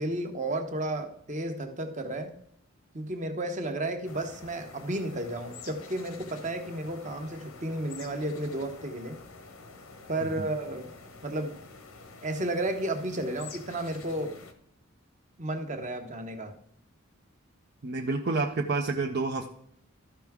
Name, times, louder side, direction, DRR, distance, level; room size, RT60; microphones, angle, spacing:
voice 1, 0.0-2.3 2.9-9.2 10.1-10.9 11.2-11.6 12.2-14.4 15.4-16.5, right 1 dB, 35° right, 6 dB, 1.0 m, -32 dB
sound 1, 4.0-14.5, left 4 dB, 90° left, 1.1 m, -48 dB
voice 2, 17.8-19.5, right 3 dB, 50° right, 3 dB, 0.6 m, -28 dB
13.5 x 5.7 x 3.6 m, 0.70 s
head